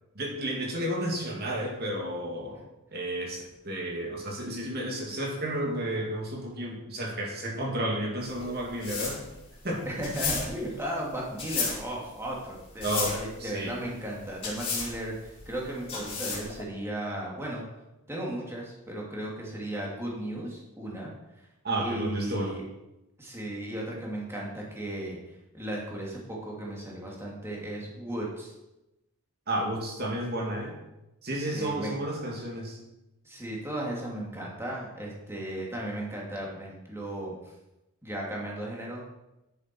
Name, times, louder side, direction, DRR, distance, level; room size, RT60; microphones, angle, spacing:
voice 1, 0.1-2.6 2.9-9.2 9.6-9.9 12.8-13.8 21.6-22.5 29.5-30.8 31.2-32.8, right 1 dB, 45° right, 0 dB, 2.5 m, -32 dB
sound 1, 8.2-16.6, left 4 dB, 25° left, 3.4 m, -34 dB
voice 2, 9.8-17.6 18.1-21.1 21.4-21.5 21.8-22.6 23.2-28.5 31.5-32.0 33.2-37.5 38.0-39.0, right 1 dB, 10° right, -3 dB, 2.5 m, -35 dB
10.5 x 10.5 x 4.6 m, 0.95 s
head